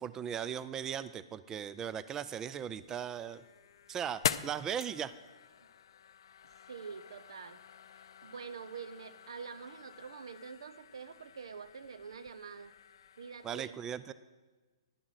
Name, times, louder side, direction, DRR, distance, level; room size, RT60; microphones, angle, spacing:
voice 1, 0.0-3.4 3.9-5.1 13.4-14.1, right 8 dB, 20° right, 15 dB, 0.3 m, -38 dB
sound 1, 2.6-13.5, left 8 dB, 65° left, 0.4 m, -44 dB
voice 2, 6.7-7.6 8.2-12.7 13.2-13.8, right 6 dB, 75° right, 14 dB, 0.6 m, -46 dB
11.0 x 7.1 x 6.4 m, 1.3 s
hypercardioid pair, 125°, 3 cm